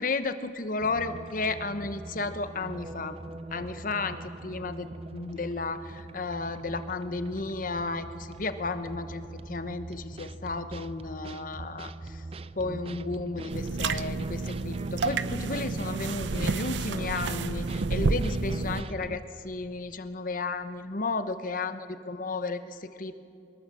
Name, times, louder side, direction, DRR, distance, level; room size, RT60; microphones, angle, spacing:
voice 1, 0.0-3.2 3.5-12.2 12.5-23.2, left 3 dB, 50° left, 10 dB, 1.1 m, -33 dB
sound 1, 0.8-19.2, right 2 dB, 35° right, 0.5 m, -41 dB
sound 2, 13.5-18.8, right 3 dB, 90° right, 0.7 m, -30 dB
22.5 x 22.0 x 7.5 m, 2.8 s
head